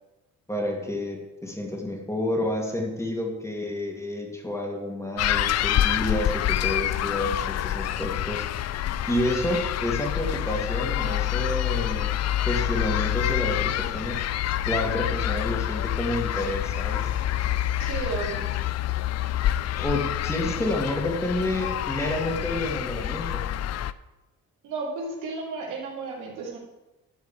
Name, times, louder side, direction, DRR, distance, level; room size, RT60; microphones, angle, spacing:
voice 1, 0.5-8.5 9.1-12.1 12.5-14.3 14.7-17.1 19.8-23.4, left 1 dB, 10° left, 0 dB, 2.4 m, -29 dB
sound 1, 5.2-23.9, left 12 dB, 60° left, 0.5 m, -27 dB
voice 2, 17.8-18.5 24.6-26.6, right 4 dB, 90° right, -3 dB, 3.1 m, -33 dB
11.5 x 4.7 x 7.4 m, 1.0 s
cardioid pair, 90°, 30 cm